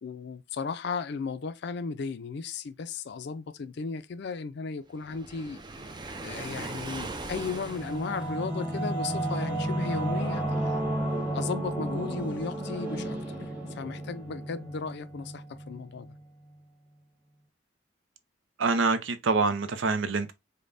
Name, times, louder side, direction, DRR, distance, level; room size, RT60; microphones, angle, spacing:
voice 1, 0.0-5.6 6.2-10.8 11.3-16.2, left 5 dB, 60° left, 0.4 m, -35 dB
Waves surf, 5.0-8.5, right 2 dB, 25° right, 0.4 m, -40 dB
Singing / Musical instrument, 7.1-16.2, right 1 dB, 10° right, 1.1 m, -32 dB
voice 2, 18.6-20.3, right 4 dB, 85° right, 0.6 m, -26 dB
5.1 x 2.1 x 2.5 m
head